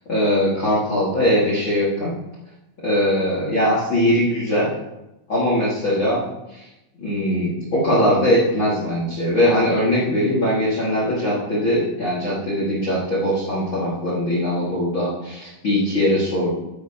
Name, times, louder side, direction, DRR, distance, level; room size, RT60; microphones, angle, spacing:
voice 1, 0.1-2.1 2.8-4.7 5.3-6.2 6.5-6.7 7.0-16.5, equal, 50° left, -6 dB, 1.4 m, -21 dB
12.0 x 9.0 x 2.9 m, 0.93 s
omnidirectional pair, 5.7 m